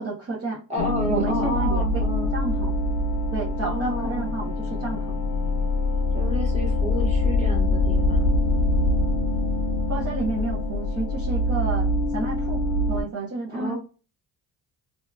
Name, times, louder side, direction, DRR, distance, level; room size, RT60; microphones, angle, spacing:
voice 1, 0.0-0.6 1.1-2.0 2.3-2.7 3.3-5.2 9.9-12.6 12.9-13.8, right 3 dB, 35° right, -6 dB, 0.8 m, -31 dB
voice 2, 0.7-2.3 3.6-4.3 6.1-8.2 13.5-13.8, equal, 15° right, -3 dB, 1.3 m, -30 dB
sound 1, 0.8-13.0, left 1 dB, 85° left, 0.7 m, -24 dB
2.7 x 2.4 x 2.3 m, 0.35 s
cardioid pair, 110°, 43 cm